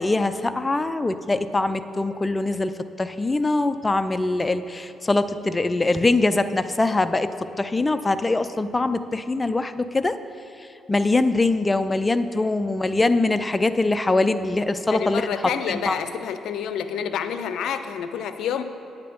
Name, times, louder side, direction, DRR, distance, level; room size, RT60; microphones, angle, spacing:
voice 1, 0.0-2.7 3.0-7.3 7.6-10.2 10.9-15.4 15.9-16.0, left 2 dB, 20° left, 11 dB, 0.5 m, -23 dB
voice 2, 14.9-18.6, left 8 dB, 75° left, 10 dB, 0.6 m, -29 dB
9.4 x 8.9 x 5.3 m, 2.8 s
cardioid pair, 90°, 0 cm